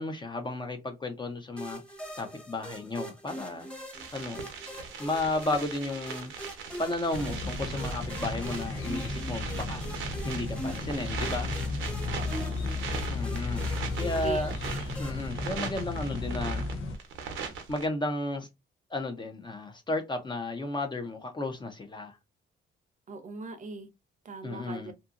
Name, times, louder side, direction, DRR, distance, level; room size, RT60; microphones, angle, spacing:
voice 1, 0.0-1.8 2.2-3.7 4.1-4.5 5.0-6.3 6.8-10.0 10.3-11.6 13.1-13.7 14.0-14.5 15.0-16.7 17.7-18.5 18.9-22.2 24.4-24.9, left 2 dB, 25° left, 0.6 m, -33 dB
sound 1, 1.6-15.3, right 1 dB, 5° left, 1.0 m, -43 dB
sound 2, 3.9-17.9, right 6 dB, 80° right, 0.7 m, -40 dB
sound 3, 7.1-17.0, left 3 dB, 85° left, 0.7 m, -34 dB
voice 2, 12.1-12.7 14.0-14.5 23.1-23.9 24.2-24.9, right 4 dB, 40° right, 0.7 m, -40 dB
2.7 x 2.6 x 2.4 m
cardioid pair, 90°, 20 cm